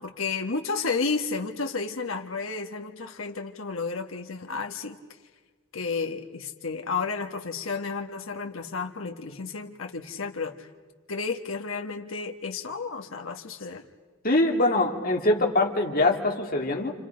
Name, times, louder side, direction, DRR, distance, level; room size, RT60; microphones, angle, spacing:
voice 1, 0.0-5.0 5.7-10.7 11.1-13.9, left 4 dB, 80° left, 4 dB, 1.6 m, -32 dB
voice 2, 14.2-16.9, left 2 dB, 45° left, 0 dB, 2.7 m, -23 dB
29.5 x 28.0 x 5.2 m, 1.4 s
head